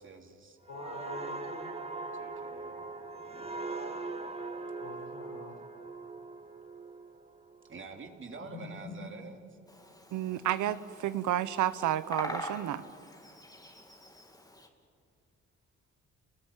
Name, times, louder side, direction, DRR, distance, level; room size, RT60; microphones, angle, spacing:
voice 1, 0.0-0.6 2.2-2.8 3.2-3.5 7.7-9.4, right 4 dB, 40° right, 3 dB, 3.0 m, -47 dB
voice 2, 0.7-1.7 4.8-5.6 8.5-9.0, left 3 dB, 60° left, 0 dB, 6.8 m, -44 dB
sound 1, 0.7-8.1 8.5-8.8, right 3 dB, 20° right, 2.0 m, -41 dB
Bird vocalization bird call bird song, 9.7-14.7, equal, 10° left, 2.9 m, -44 dB
voice 3, 10.1-12.8, right 11 dB, 80° right, 14 dB, 1.0 m, -31 dB
30.0 x 20.0 x 9.1 m, 2.3 s
cardioid pair, 90°, 30 cm